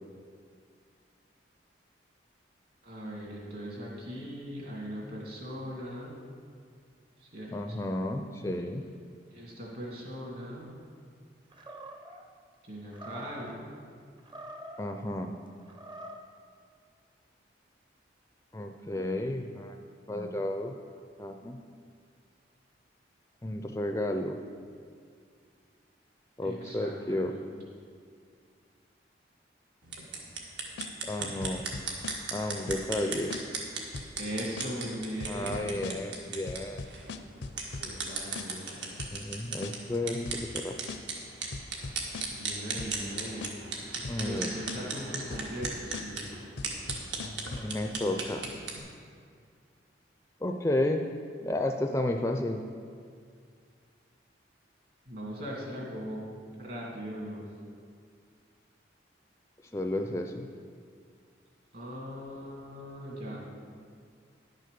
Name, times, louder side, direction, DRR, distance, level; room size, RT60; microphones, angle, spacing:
voice 1, 2.8-6.2 7.3-7.8 9.3-10.7 12.7-13.7 26.4-27.3 34.1-35.7 37.8-39.0 42.3-43.5 44.2-46.3 55.1-56.2 56.6-57.4 61.7-63.5, equal, 55° right, -3 dB, 2.8 m, -39 dB
voice 2, 7.5-8.9 14.8-15.3 18.5-19.8 20.1-20.8 21.2-21.6 23.4-24.4 26.4-27.4 31.0-31.6 32.3-33.5 35.3-36.9 39.1-40.9 44.1-44.5 47.6-48.5 50.4-51.1 51.4-52.6 59.7-60.5, left 1 dB, 15° left, 5 dB, 0.4 m, -32 dB
Animal, 11.5-12.2 12.9-13.6 14.2-14.9 15.6-16.3, right 1 dB, 25° right, 0.7 m, -45 dB
sound 1, 29.8-48.8, right 4 dB, 75° right, 1.6 m, -38 dB
sound 2, 30.8-31.1 31.4-32.4 32.7-33.0 33.3-33.7 33.9-34.3 34.6-34.9 35.2-36.2 36.5-38.1 38.4-38.7 39.0-39.4 39.6-40.0 40.3-40.6 40.9-41.2 41.5-42.5 42.8-43.1 43.4-43.8 44.0-44.4 44.7-45.0 45.3-46.3 46.6-47.7, left 3 dB, 75° left, 0.5 m, -40 dB
10.5 x 6.5 x 6.7 m, 2.1 s
head